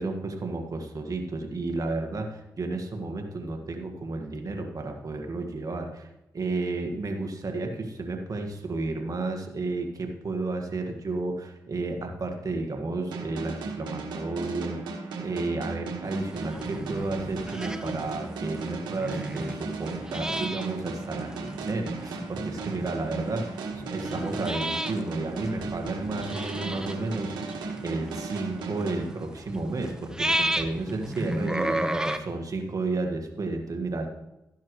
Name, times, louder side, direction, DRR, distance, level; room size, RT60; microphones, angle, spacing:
voice 1, 0.0-27.3 27.8-31.9 32.2-34.1, right 3 dB, 55° right, 3 dB, 1.9 m, -32 dB
sound 1, 13.1-29.7, right 4 dB, 90° right, 1.6 m, -36 dB
sound 2, 16.0-32.2, right 1 dB, 10° right, 1.2 m, -34 dB
14.0 x 10.5 x 3.3 m, 0.90 s
supercardioid pair, 45°, 7 cm